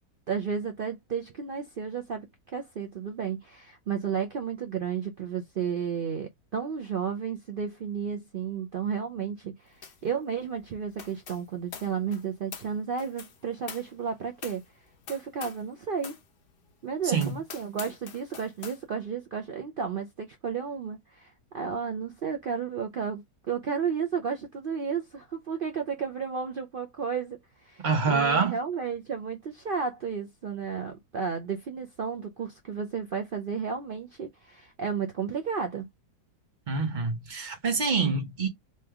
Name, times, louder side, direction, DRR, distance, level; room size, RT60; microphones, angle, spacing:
voice 1, 0.3-14.6 15.1-16.1 16.8-35.9, right 6 dB, 80° right, 0.4 m, -33 dB
sound 1, 9.8-10.1 10.3-15.7 16.0-16.3 16.7-16.8 17.2-18.8, left 6 dB, 55° left, 0.7 m, -45 dB
voice 2, 17.0-17.4 27.8-28.6 36.7-38.5, right 4 dB, 35° right, 0.9 m, -26 dB
3.2 x 2.8 x 3.5 m
omnidirectional pair, 1.7 m